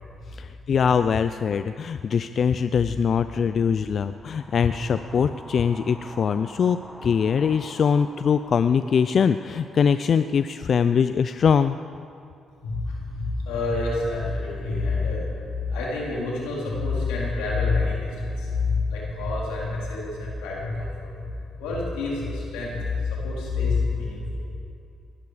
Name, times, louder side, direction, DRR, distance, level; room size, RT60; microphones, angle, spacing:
voice 1, 0.3-11.8, left 6 dB, 55° left, 11 dB, 0.4 m, -22 dB
sound 1, 4.0-12.3, equal, ahead, 1.5 m, -46 dB
voice 2, 12.6-21.3 21.6-24.4, left 3 dB, 90° left, -5 dB, 3.9 m, -27 dB
19.0 x 12.0 x 4.9 m, 2.5 s
supercardioid pair, 60°, 0 cm